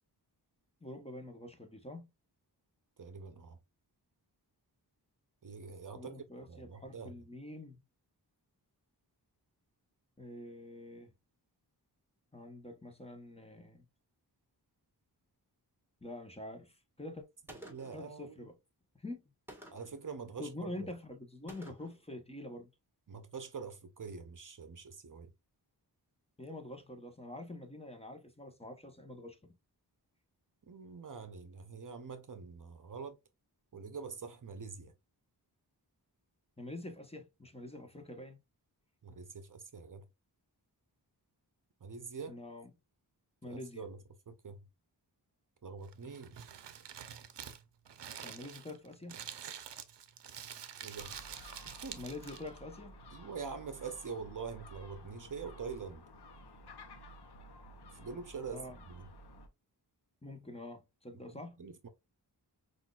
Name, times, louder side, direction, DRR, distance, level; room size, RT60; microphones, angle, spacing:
voice 1, 0.8-2.1 5.9-7.8 10.2-11.1 12.3-13.8 16.0-17.2 17.9-18.5 18.9-19.2 20.4-22.7 26.4-29.5 36.6-38.4 42.3-42.7 43.4-43.8 48.2-49.2 52.0-52.9 58.5-58.8 60.2-61.6, left 1 dB, 15° left, 1.0 m, -46 dB
voice 2, 3.0-3.6 5.4-7.1 17.7-18.5 19.7-20.9 23.1-25.3 30.7-33.2 33.7-34.9 39.0-40.0 41.8-42.4 43.5-44.0 44.3-44.6 45.6-46.5 50.8-51.2 51.6-52.0 53.1-56.0 57.9-59.1 61.3-61.9, right 5 dB, 50° right, 0.7 m, -45 dB
Gunshot gunfire, 17.5-18.1 19.5-20.0 21.5-22.0, right 1 dB, 5° right, 1.5 m, -52 dB
Crumpling crinkling, 45.8-52.6, right 8 dB, 90° right, 0.6 m, -47 dB
Gull seagull, 51.0-59.5, equal, 70° left, 0.9 m, -53 dB
5.7 x 2.6 x 2.4 m
wide cardioid pair, 60°, 41 cm